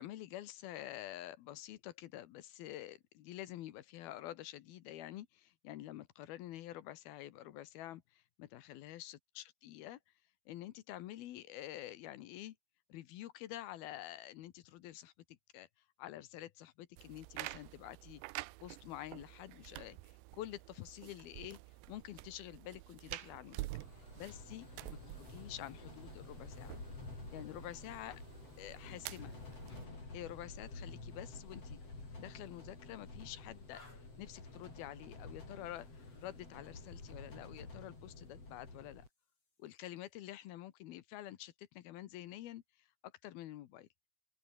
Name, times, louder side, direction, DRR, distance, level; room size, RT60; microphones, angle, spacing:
voice 1, 0.0-10.0 10.5-12.6 12.9-15.7 16.0-18.2 18.6-21.6 21.9-23.7 24.2-25.0 25.3-26.8 27.3-28.2 28.6-29.3 30.1-31.8 32.2-33.9 34.2-39.0 39.6-43.9, left 14 dB, 70° left, 2.8 m, -48 dB
sound 1, 17.0-29.9, right 19 dB, 90° right, 3.0 m, -49 dB
sound 2, 23.8-39.1, left 3 dB, 35° left, 8.7 m, -50 dB
open air
omnidirectional pair, 4.9 m